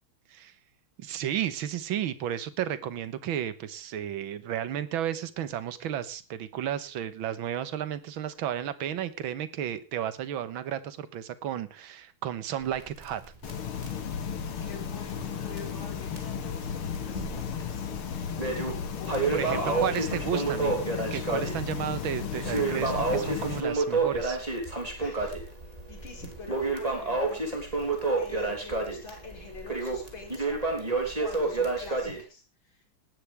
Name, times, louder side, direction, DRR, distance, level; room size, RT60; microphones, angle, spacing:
voice 1, 1.0-13.2 19.3-20.8 21.1-24.4, right 10 dB, 75° right, 13 dB, 1.9 m, -33 dB
Crackle, 12.6-15.3 15.6-15.7 16.2-16.3 16.9-17.6 17.9-32.2, right 3 dB, 15° right, 3.4 m, -29 dB
sound 1, 13.4-23.6, left 7 dB, 85° left, 2.4 m, -35 dB
voice 2, 14.6-18.1 19.0-20.1 25.0-25.3 25.6-27.9 28.2-30.6 31.2-32.9, left 4 dB, 70° left, 1 dB, 5.5 m, -45 dB
18.5 x 11.5 x 3.5 m, 0.30 s
omnidirectional pair, 2.3 m